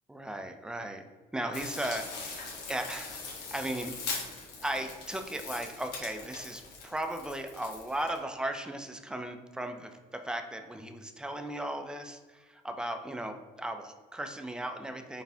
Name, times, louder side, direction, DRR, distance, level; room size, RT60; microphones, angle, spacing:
voice 1, 0.1-1.0 1.3-2.4 2.7-3.9 4.6-15.2, right 1 dB, 5° right, 6 dB, 0.3 m, -36 dB
sound 1, 1.5-8.2, left 4 dB, 80° left, 1.2 m, -41 dB
4.1 x 3.3 x 2.7 m, 1.3 s
cardioid pair, 110°, 17 cm